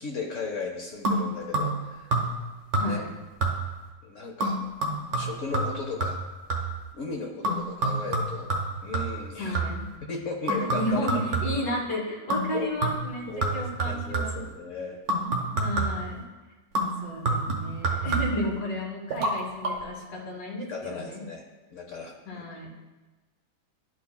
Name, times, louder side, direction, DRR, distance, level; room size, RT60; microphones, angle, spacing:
voice 1, 0.0-2.1 2.8-3.0 4.0-4.6 5.1-6.2 6.6-6.7 6.9-8.5 8.8-9.6 10.0-11.4 12.5-12.7 13.3-15.0 20.7-21.4 21.7-22.1, left 4 dB, 60° left, 1 dB, 0.9 m, -36 dB
sound 1, 1.0-1.8 2.1-2.5 2.7-3.1 3.4-3.8 4.4-6.8 7.4-9.9 10.5-11.7 12.3-12.5 12.8-14.5 15.1-16.1 16.7-18.5 19.1-19.3 19.6-19.7, right 2 dB, 60° right, 1.5 m, -28 dB
voice 2, 9.4-9.9 10.7-14.4 15.6-16.2 16.8-21.2 22.3-22.7, left 1 dB, 80° left, -1 dB, 2.1 m, -33 dB
11.5 x 5.0 x 2.2 m, 1.2 s
omnidirectional pair, 1.9 m